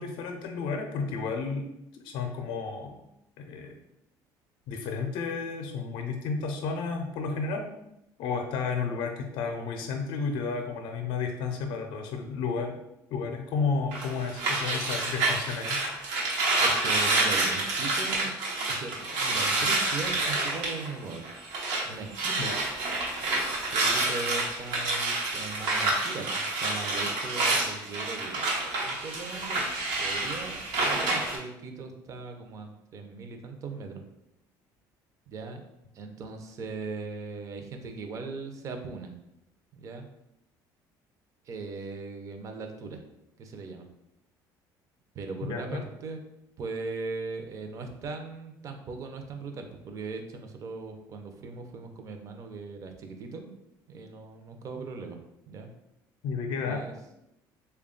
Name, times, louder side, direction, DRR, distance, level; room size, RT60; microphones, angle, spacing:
voice 1, 0.0-1.7 2.0-3.0 3.4-3.8 4.7-7.7 8.2-12.8 13.1-16.0 22.4-22.6 45.5-45.8 56.2-56.9, left 5 dB, 70° left, 4 dB, 0.5 m, -32 dB
sound 1, 13.9-21.9 22.1-31.4, right 2 dB, 85° right, 0.9 m, -28 dB
voice 2, 16.6-18.4 18.7-21.2 21.8-22.6 23.7-29.6 30.0-30.6 30.9-34.0 35.3-35.7 35.9-39.2 39.7-40.1 41.4-43.0 43.4-43.9 45.1-46.2 46.6-53.5 53.9-55.2 55.5-55.7 56.6-56.9, right 4 dB, 40° right, 5 dB, 0.5 m, -39 dB
3.4 x 2.3 x 3.7 m, 0.86 s
cardioid pair, 140°, 8 cm